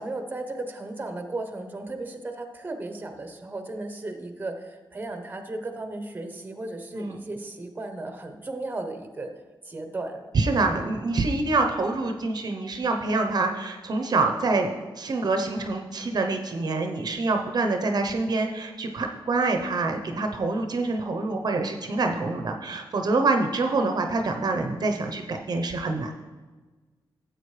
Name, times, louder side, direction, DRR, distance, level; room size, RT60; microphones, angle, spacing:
voice 1, 0.0-9.3 9.6-10.3 10.7-10.9, right 2 dB, 20° right, 6 dB, 0.9 m, -35 dB
voice 2, 10.3-26.1, right 3 dB, 50° right, 4 dB, 0.8 m, -26 dB
13.5 x 7.9 x 3.3 m, 1.3 s
wide cardioid pair, 115°, 9 cm